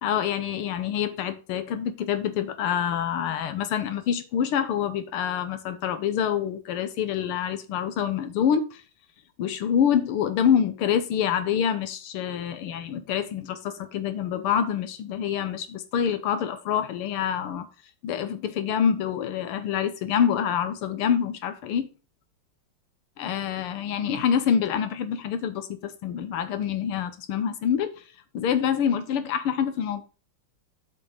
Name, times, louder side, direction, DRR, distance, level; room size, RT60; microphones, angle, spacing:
voice 1, 0.0-8.8 9.4-17.7 18.0-21.9 23.2-27.9 28.3-30.0, left 8 dB, 85° left, 1.8 m, -26 dB
7.0 x 5.4 x 4.9 m
omnidirectional pair, 2.3 m